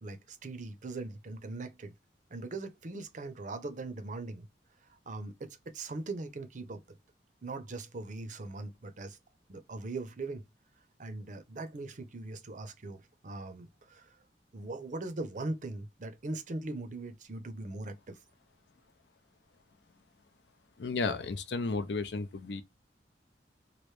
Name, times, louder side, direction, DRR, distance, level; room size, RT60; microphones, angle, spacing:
voice 1, 0.0-1.9 2.3-4.5 4.9-6.8 7.4-9.2 9.5-10.4 11.0-13.0 13.2-14.2 14.5-18.2, right 2 dB, 45° right, 0.6 m, -40 dB
voice 2, 20.8-22.6, left 3 dB, 65° left, 0.5 m, -33 dB
3.1 x 2.5 x 3.2 m
head